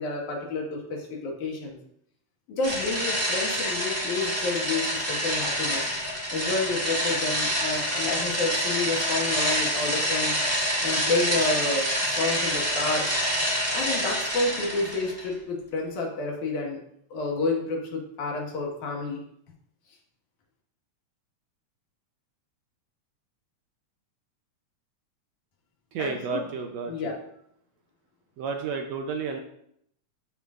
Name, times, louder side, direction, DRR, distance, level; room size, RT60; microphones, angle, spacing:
voice 1, 0.0-1.8 2.5-5.9 6.3-10.3 10.8-13.1 13.7-16.8 17.1-19.2 26.0-26.5 26.9-27.2, left 3 dB, 75° left, -1 dB, 2.9 m, -29 dB
sound 1, 2.6-15.3, equal, 10° right, 0.9 m, -27 dB
voice 2, 25.9-27.2 28.4-29.4, right 5 dB, 75° right, 4 dB, 1.6 m, -31 dB
13.5 x 5.5 x 2.5 m, 0.72 s
omnidirectional pair, 3.5 m